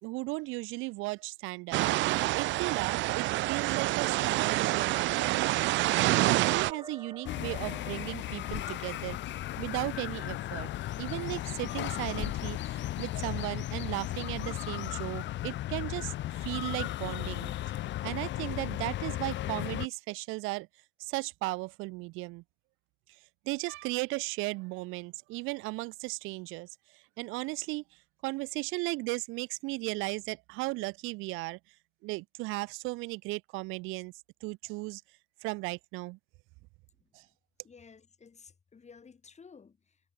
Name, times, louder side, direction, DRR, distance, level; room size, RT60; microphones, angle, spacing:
voice 1, 0.0-1.8 2.3-9.2 9.6-10.7 11.0-16.1 16.4-17.5 18.0-20.7 21.0-22.4 23.4-27.8 28.2-31.6 32.0-34.1 34.4-35.0 35.4-36.2 37.1-37.2, right 24 dB, 85° right, 1.7 m, -36 dB
sound 1, 1.7-6.7, right 18 dB, 70° right, 0.5 m, -27 dB
sound 2, 5.7-10.6, right 3 dB, 20° right, 4.0 m, -50 dB
sound 3, 7.2-19.9, left 14 dB, 65° left, 1.1 m, -35 dB
voice 2, 37.6-40.0, left 5 dB, 35° left, 4.7 m, -54 dB
supercardioid pair, 80°, 20 cm